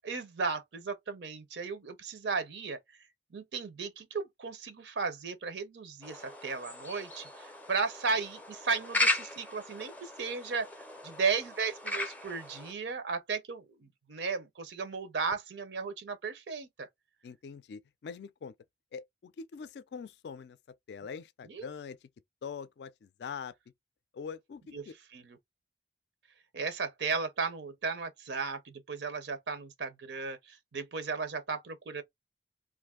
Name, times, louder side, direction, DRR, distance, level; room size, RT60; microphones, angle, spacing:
voice 1, 0.0-2.8 3.3-10.7 11.0-16.9 21.5-21.6 24.7-24.8 25.1-25.4 26.5-32.0, right 4 dB, 85° right, 0.6 m, -35 dB
sound 1, 6.0-12.7, left 1 dB, 10° left, 0.4 m, -36 dB
voice 2, 17.2-18.5 18.9-20.6 20.9-22.1 22.4-23.5 24.1-24.9, left 6 dB, 75° left, 0.3 m, -43 dB
2.5 x 2.5 x 3.5 m
head